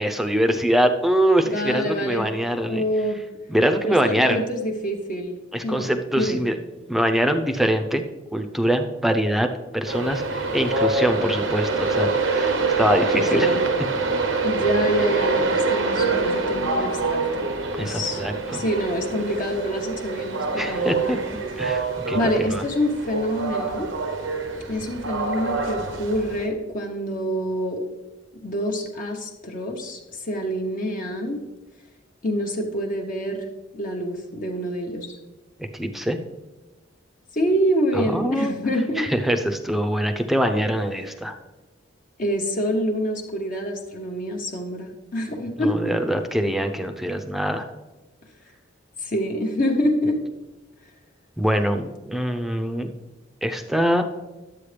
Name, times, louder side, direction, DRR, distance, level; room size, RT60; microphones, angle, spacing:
voice 1, 0.0-2.8 3.5-4.4 5.5-6.6 6.9-8.0 8.3-9.5 9.7-13.6 17.8-18.6 20.6-21.2 21.6-22.6 35.6-36.2 37.9-38.5 39.0-41.3 45.6-47.7 51.4-52.9 53.4-54.0, equal, ahead, 6 dB, 0.6 m, -23 dB
voice 2, 1.4-2.3 2.7-3.2 3.9-5.9 6.2-6.4 13.1-13.6 14.4-17.5 17.8-18.2 18.5-21.2 21.5-21.8 22.1-23.9 24.7-27.8 28.4-31.4 32.2-33.4 33.7-35.1 37.3-39.0 42.2-45.9 49.0-50.2, equal, 45° left, 0 dB, 1.0 m, -26 dB
Train, 9.9-26.5, right 3 dB, 90° right, 1.0 m, -25 dB
11.5 x 8.0 x 3.3 m, 1.1 s
head